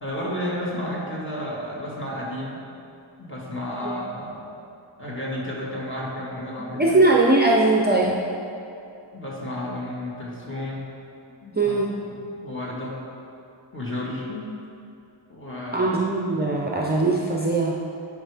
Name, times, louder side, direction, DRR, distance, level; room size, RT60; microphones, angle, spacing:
voice 1, 0.0-2.6 3.2-4.5 5.0-7.0 9.1-10.9 11.3-11.8 12.1-13.0 13.7-14.5 15.3-15.9, left 1 dB, 25° left, -5 dB, 1.8 m, -32 dB
voice 2, 6.8-8.2 11.5-11.9 15.7-17.7, right 2 dB, 20° right, -2 dB, 0.6 m, -20 dB
11.5 x 5.0 x 3.5 m, 2.8 s
wide cardioid pair, 90°, 46 cm